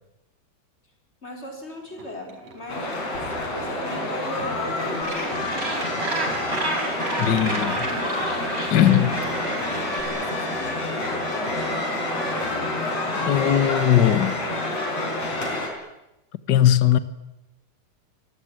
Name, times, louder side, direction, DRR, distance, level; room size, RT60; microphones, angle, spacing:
voice 1, 1.2-2.9 3.5-5.5 7.0-11.9, equal, 20° left, 5.0 m, -39 dB
sound 1, 1.8-7.8 8.2-10.4 10.7-13.8 14.1-15.2, right 2 dB, 55° right, 6.0 m, -47 dB
sound 2, 2.7-15.7, left 1 dB, 55° left, 5.9 m, -28 dB
Gull seagull, 5.0-10.0, right 1 dB, 25° right, 5.1 m, -30 dB
voice 2, 7.2-7.7 8.7-9.1 13.3-14.4 16.5-17.0, left 11 dB, 85° left, 0.9 m, -18 dB
26.5 x 20.0 x 8.9 m
omnidirectional pair, 3.6 m